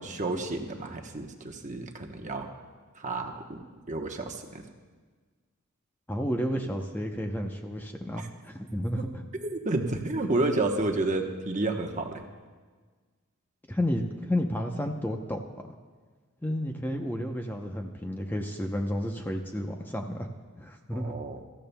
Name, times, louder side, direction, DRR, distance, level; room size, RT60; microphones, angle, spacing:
voice 1, 0.0-2.5 2.9-4.6 8.2-8.3 9.4-12.2 20.9-21.4, right 2 dB, 35° right, 3 dB, 1.0 m, -31 dB
voice 2, 6.1-9.2 13.7-15.4 16.4-20.3 20.6-21.2, equal, 10° left, 3 dB, 0.7 m, -31 dB
24.0 x 14.5 x 2.2 m, 1.4 s
head